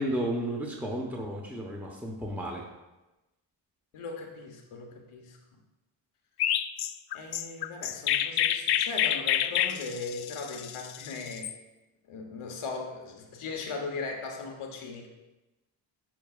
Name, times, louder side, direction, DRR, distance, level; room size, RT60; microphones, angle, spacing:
voice 1, 0.0-2.6, right 1 dB, 5° right, -1 dB, 1.1 m, -33 dB
voice 2, 3.9-5.4 7.1-11.5 12.0-15.1, left 4 dB, 80° left, 2 dB, 1.2 m, -38 dB
Chirp tweet, 6.4-11.5, left 11 dB, 55° left, 0.5 m, -28 dB
10.5 x 4.6 x 2.4 m, 1.0 s
supercardioid pair, 45°, 50 cm